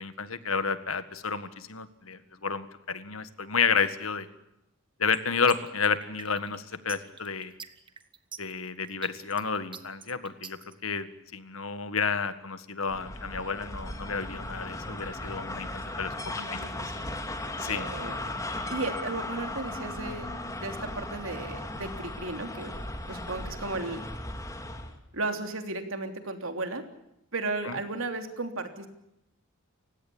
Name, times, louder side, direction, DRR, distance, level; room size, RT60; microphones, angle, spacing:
voice 1, 0.0-4.3 5.0-7.5 8.4-16.1 16.5-16.6 17.6-17.9, left 5 dB, 75° left, 12 dB, 1.8 m, -31 dB
sound 1, 5.1-10.7, right 6 dB, 25° right, 1.3 m, -44 dB
sound 2, 12.9-25.0, left 1 dB, 15° left, 2.4 m, -37 dB
voice 2, 16.3-17.1 17.7-18.2 18.7-20.3 20.6-22.7 23.1-24.0 25.1-26.8 27.3-28.9, right 2 dB, 65° right, 6 dB, 3.2 m, -34 dB
30.0 x 16.5 x 8.7 m, 0.85 s
head